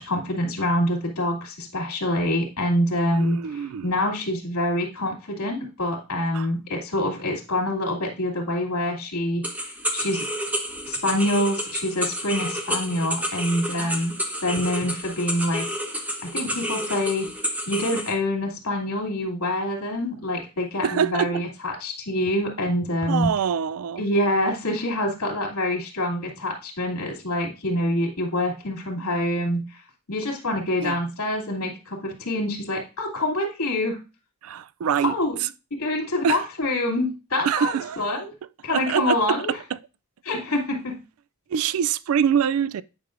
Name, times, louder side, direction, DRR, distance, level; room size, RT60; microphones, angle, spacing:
voice 1, 0.0-9.4 9.9-10.2 10.9-14.1 14.4-15.7 16.2-17.3 17.7-23.3 24.0-29.6 30.1-34.0 35.0-35.4 35.8-38.3 38.6-39.5 40.2-41.0, left 1 dB, 85° left, 2.6 m, -26 dB
voice 2, 3.1-3.9 6.3-6.5 13.8-14.0 20.8-21.4 23.1-24.0 30.8-31.0 34.4-35.5 36.2-36.4 37.4-38.0 38.7-39.8 41.5-42.8, right 8 dB, 70° right, 0.3 m, -25 dB
sound 1, 9.4-18.1, equal, 5° right, 0.9 m, -30 dB
9.6 x 5.4 x 2.5 m
head